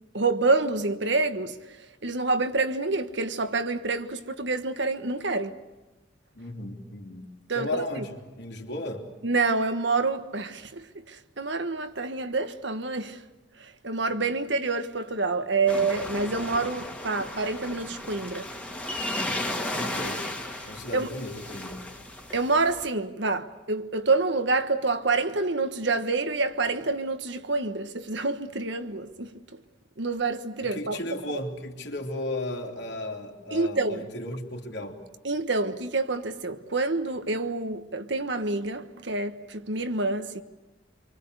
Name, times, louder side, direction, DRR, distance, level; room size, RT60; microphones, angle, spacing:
voice 1, 0.1-1.5 2.0-5.6 7.5-8.0 9.2-13.2 13.8-18.5 20.9-21.1 22.3-29.3 30.0-31.4 33.5-34.1 35.2-40.4, right 3 dB, 65° right, 1.4 m, -27 dB
voice 2, 6.3-9.1 19.8-20.2 20.6-21.9 30.6-35.0, left 1 dB, 60° left, 3.2 m, -35 dB
sound 1, 15.7-22.9, left 1 dB, 5° left, 2.0 m, -35 dB
27.0 x 24.0 x 8.2 m
head